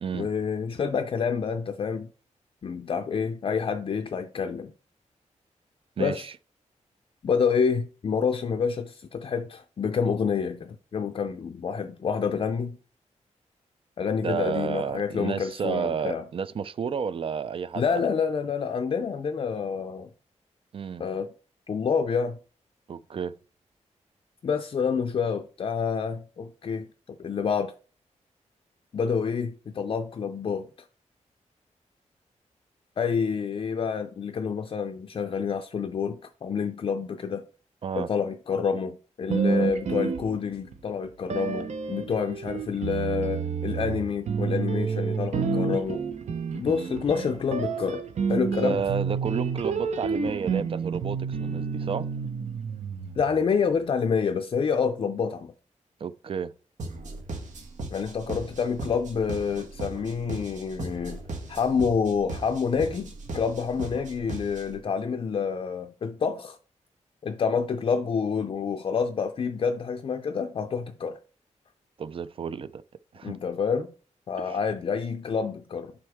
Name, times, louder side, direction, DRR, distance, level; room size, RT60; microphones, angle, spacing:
voice 1, 0.1-2.1 2.6-4.7 6.0-6.2 7.2-12.8 14.0-16.2 17.7-20.1 21.0-21.3 21.7-22.4 24.4-27.7 28.9-30.7 33.0-37.4 38.0-46.0 46.5-48.0 48.3-48.8 53.2-55.5 57.9-66.6 67.2-71.2 73.2-73.9 74.3-75.9, left 6 dB, 45° left, 0.4 m, -28 dB
voice 2, 6.0-6.3 14.2-18.0 20.7-21.1 22.9-23.3 37.8-38.1 39.5-39.7 48.6-52.1 56.0-56.5 72.0-72.8 73.1-73.3 74.4-74.6, right 6 dB, 45° right, 0.3 m, -31 dB
sound 1, 39.3-40.8 41.3-53.5, right 5 dB, 65° right, 0.8 m, -29 dB
sound 2, 56.8-64.8, right 2 dB, 80° right, 1.5 m, -38 dB
7.7 x 5.4 x 3.5 m
wide cardioid pair, 175°, 12 cm